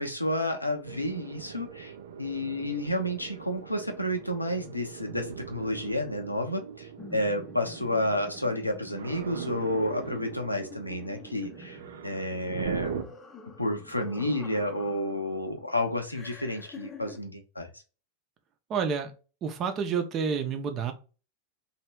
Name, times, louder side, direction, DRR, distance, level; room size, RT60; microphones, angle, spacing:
voice 1, 0.0-13.1 13.6-17.7, left 1 dB, 85° left, 4 dB, 0.8 m, -31 dB
sound 1, 0.8-13.0, right 8 dB, 60° right, 0.5 m, -41 dB
sound 2, 7.0-15.5 16.1-17.2, left 3 dB, 20° left, 0.7 m, -48 dB
voice 2, 18.7-19.1 19.4-20.9, right 6 dB, 30° right, 6 dB, 0.8 m, -29 dB
3.3 x 2.9 x 4.4 m, 0.34 s
figure-of-eight pair, 90°, 0 cm